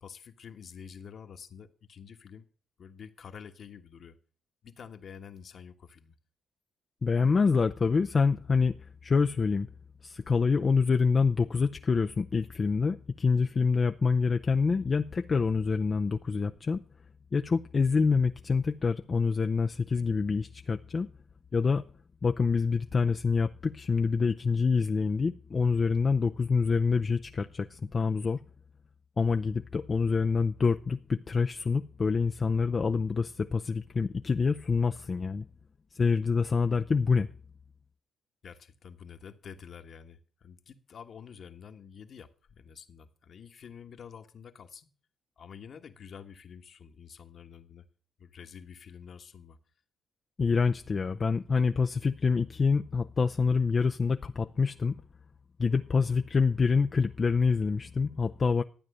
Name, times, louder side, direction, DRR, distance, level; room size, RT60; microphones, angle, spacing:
voice 1, 0.0-2.4 2.8-4.2 4.6-6.1 38.4-44.9 45.4-47.8 48.2-49.6, left 7 dB, 55° left, 1.4 m, -48 dB
voice 2, 7.0-9.7 10.0-16.8 17.3-21.1 21.5-21.8 22.2-28.4 29.2-35.4 35.9-37.3 50.4-55.0 55.6-58.6, left 5 dB, 35° left, 0.6 m, -26 dB
12.5 x 9.0 x 6.7 m
cardioid pair, 90°, 0 cm